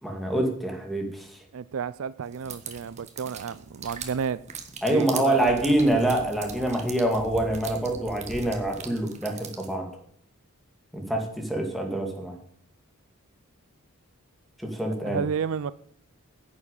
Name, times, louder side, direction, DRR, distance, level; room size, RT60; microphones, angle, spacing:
voice 1, 0.0-1.4 4.8-9.9 10.9-12.4 14.6-15.2, right 1 dB, ahead, 3 dB, 2.2 m, -26 dB
voice 2, 1.5-4.4 4.9-5.7 15.1-15.7, right 7 dB, 65° right, 17 dB, 0.4 m, -31 dB
sound 1, 2.3-9.7, right 5 dB, 30° right, 1.5 m, -40 dB
10.5 x 7.2 x 8.3 m, 0.64 s
head